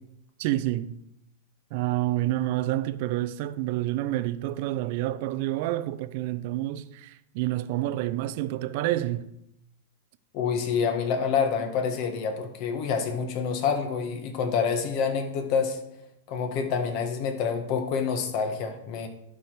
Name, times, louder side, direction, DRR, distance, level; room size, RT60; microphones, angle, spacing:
voice 1, 0.4-1.0 1.7-9.3, right 15 dB, 50° right, 0.5 m, -28 dB
voice 2, 10.3-15.8 16.3-19.1, left 6 dB, 45° left, 1.4 m, -27 dB
11.5 x 4.9 x 4.6 m
hypercardioid pair, 135°, 0 cm